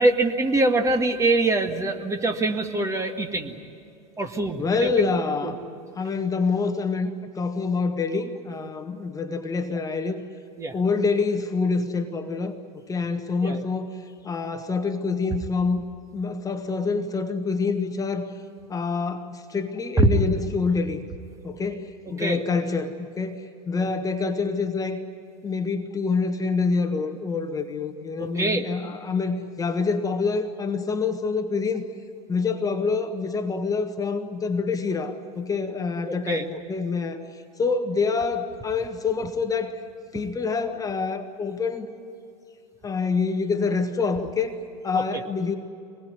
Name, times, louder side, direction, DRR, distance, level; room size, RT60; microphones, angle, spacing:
voice 1, 0.0-3.5 4.2-5.1 5.4-5.5 9.7-9.8 10.6-10.8 13.4-13.6 20.0-20.1 22.2-22.4 28.4-28.7 36.1-36.5 44.9-45.0, right 2 dB, 15° right, 5 dB, 1.8 m, -23 dB
voice 2, 4.6-5.6 6.0-10.2 10.7-12.5 12.9-15.8 16.1-18.3 18.7-21.0 21.4-25.0 25.4-31.9 32.3-39.8 40.1-41.9 42.8-45.5, left 4 dB, 15° left, 6 dB, 1.5 m, -26 dB
25.0 x 21.0 x 9.6 m, 2.6 s
figure-of-eight pair, 90°, 20 cm